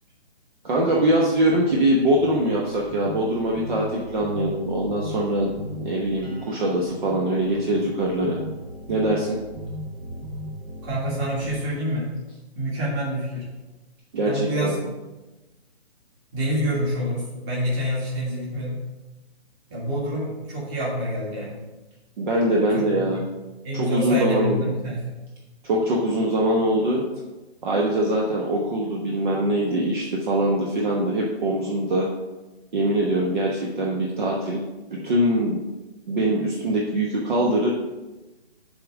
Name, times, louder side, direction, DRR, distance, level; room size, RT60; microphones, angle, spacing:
voice 1, 0.6-8.4 8.9-9.4 14.1-14.8 22.2-23.2 23.7-24.7 25.6-27.0 27.6-32.1 32.7-34.6 34.9-35.6 36.1-37.7, right 1 dB, 45° right, -2 dB, 1.1 m, -23 dB
sound 1, 0.9-11.6, equal, 70° right, 2.3 m, -37 dB
voice 2, 10.8-12.1 12.6-13.5 14.3-14.8 16.3-18.8 19.7-21.6 22.7-23.1 23.6-25.1, equal, 20° right, -6 dB, 1.8 m, -27 dB
7.3 x 3.7 x 6.1 m, 1.1 s
hypercardioid pair, 150°, 32 cm